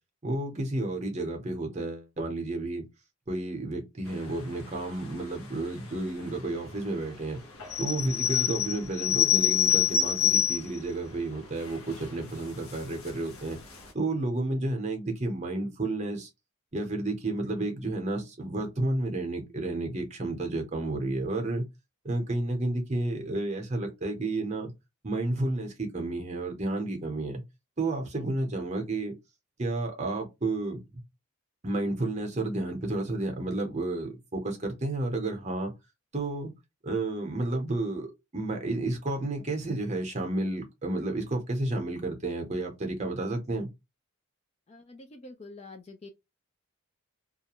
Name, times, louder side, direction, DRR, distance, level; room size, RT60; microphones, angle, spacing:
voice 1, 0.2-2.8 3.3-7.4 7.8-13.6 13.9-16.3 16.7-21.7 22.0-24.7 25.0-27.4 27.8-29.1 29.6-30.8 31.6-35.7 36.1-36.5 36.8-38.1 38.3-43.7, right 2 dB, 30° right, 0.7 m, -31 dB
sound 1, 7.6-10.8 11.3-11.4 11.6-12.1 12.7-13.1 13.5-13.6 13.8-13.9, left 9 dB, 80° left, 0.7 m, -26 dB
voice 2, 44.7-46.1, left 2 dB, 30° left, 0.3 m, -46 dB
2.3 x 2.1 x 2.9 m
head